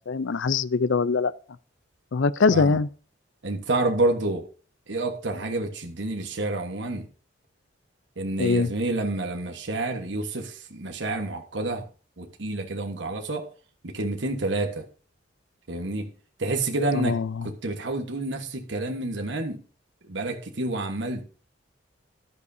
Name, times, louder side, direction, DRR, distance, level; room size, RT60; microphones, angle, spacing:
voice 1, 0.1-1.3 2.1-2.9 8.4-8.7 16.9-17.4, left 4 dB, 75° left, 0.5 m, -23 dB
voice 2, 3.4-4.4 4.9-7.1 8.2-11.8 12.2-13.5 13.8-14.8 15.7-16.1 16.4-19.6 20.1-21.2, right 2 dB, 65° right, 1.3 m, -28 dB
14.5 x 11.0 x 2.7 m
head